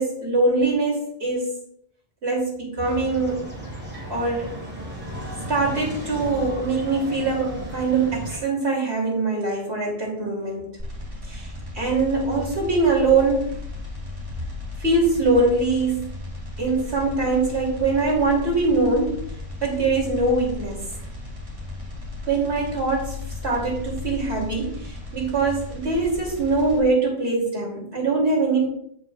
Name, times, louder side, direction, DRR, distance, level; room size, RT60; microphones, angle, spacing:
voice 1, 0.0-1.5 2.2-3.5 4.1-4.5 5.5-10.7 11.3-13.6 14.8-16.1 16.6-19.2 19.6-20.8 22.3-23.2 23.4-28.7, right 3 dB, 90° right, -2 dB, 3.3 m, -23 dB
sound 1, 2.8-8.4, equal, 20° right, 3.1 m, -35 dB
sound 2, 10.8-26.8, left 2 dB, 55° right, 3.6 m, -35 dB
15.0 x 5.9 x 2.5 m, 0.68 s
omnidirectional pair, 1.1 m